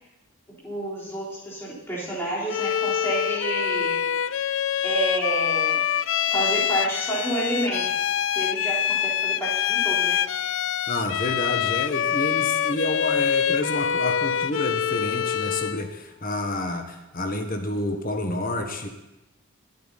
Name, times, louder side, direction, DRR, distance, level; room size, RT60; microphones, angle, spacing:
voice 1, 0.6-4.0 4.8-5.8 6.3-7.8 8.3-10.2, right 2 dB, 10° left, -6 dB, 3.8 m, -29 dB
Bowed string instrument, 2.5-15.9, left 9 dB, 65° left, 0.4 m, -25 dB
voice 2, 10.9-18.9, left 1 dB, 40° left, 5 dB, 1.4 m, -29 dB
22.5 x 8.2 x 4.1 m, 0.97 s
head